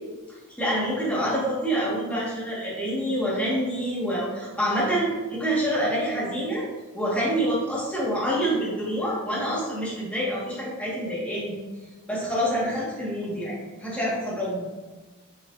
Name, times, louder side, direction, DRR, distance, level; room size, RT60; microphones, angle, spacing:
voice 1, 0.6-6.6 6.9-11.5 12.1-14.6, equal, 5° left, -7 dB, 2.0 m, -27 dB
8.0 x 4.7 x 2.8 m, 1.2 s
head